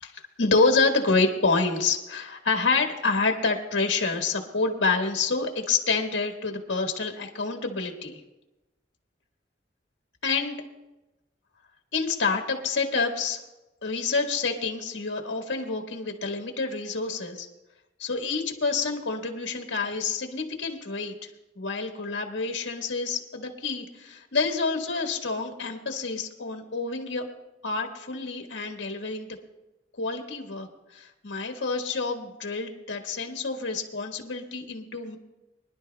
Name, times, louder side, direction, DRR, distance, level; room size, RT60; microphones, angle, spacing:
voice 1, 0.0-8.2 10.2-10.5 11.9-13.4 13.8-17.5 18.0-21.3 21.5-27.3 27.6-29.3 29.9-30.7 30.9-35.2, left 4 dB, 90° left, 3 dB, 1.5 m, -28 dB
24.5 x 11.0 x 2.2 m, 1.0 s
head